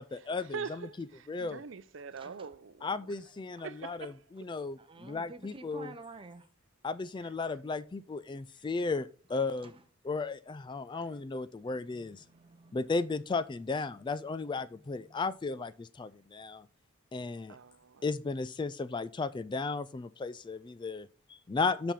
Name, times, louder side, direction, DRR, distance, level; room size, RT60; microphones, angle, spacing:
voice 1, 0.0-0.9 1.3-1.6 2.8-5.9 6.8-9.7 10.0-12.2 12.7-16.7 17.1-17.6 18.0-21.9, left 4 dB, 25° left, 0.3 m, -35 dB
voice 2, 0.5-2.9 3.6-4.1 17.5-18.0, right 5 dB, 65° right, 0.6 m, -43 dB
voice 3, 2.0-2.6 3.6-3.7 4.8-6.5 9.6-9.8 10.9-13.0 14.7-15.2, right 3 dB, 25° right, 0.8 m, -52 dB
7.5 x 5.2 x 5.8 m
head